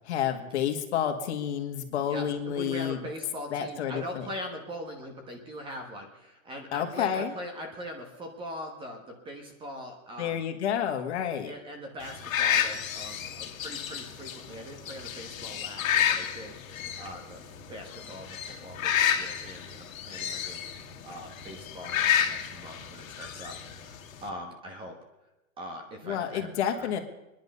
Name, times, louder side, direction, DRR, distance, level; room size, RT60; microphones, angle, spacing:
voice 1, 0.1-3.0 3.5-4.3 6.7-7.3 10.2-11.5 26.0-27.0, left 9 dB, 55° left, 5 dB, 1.9 m, -30 dB
voice 2, 2.1-10.4 11.5-16.5 16.9-17.4 17.7-20.7 21.0-25.0 25.6-26.9, equal, 10° right, 3 dB, 1.3 m, -41 dB
sound 1, 12.0-24.3, left 9 dB, 75° left, 2.0 m, -31 dB
24.0 x 10.5 x 5.5 m, 0.98 s
supercardioid pair, 170°, 41 cm